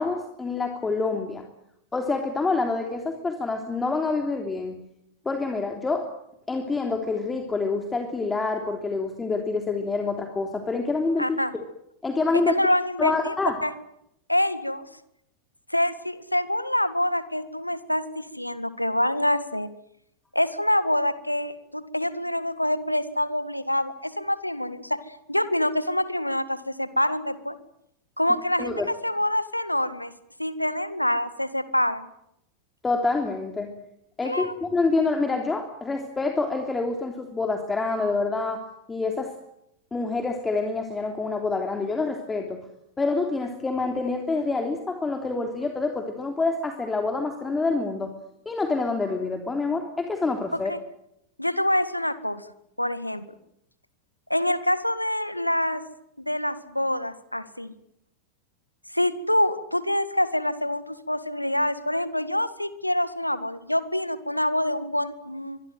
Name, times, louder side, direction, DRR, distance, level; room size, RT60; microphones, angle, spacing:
voice 1, 0.0-1.4 1.9-4.8 5.2-6.1 6.5-11.4 12.0-12.5 13.0-13.6 28.6-28.9 32.8-33.7 34.2-38.6 38.9-39.3 39.9-42.6 43.0-48.1 48.4-50.7, left 3 dB, 15° left, 4 dB, 3.2 m, -27 dB
voice 2, 11.2-11.5 12.5-13.3 13.6-13.7 14.3-14.9 15.7-19.7 20.3-25.0 25.3-27.6 28.2-28.7 29.0-30.1 30.4-32.1 34.2-34.5 50.7-50.8 51.4-52.4 52.8-53.2 54.3-55.8 56.2-57.7 58.9-65.6, left 1 dB, 90° left, 14 dB, 1.8 m, -26 dB
25.0 x 23.5 x 7.8 m, 0.79 s
figure-of-eight pair, 90°, 0 cm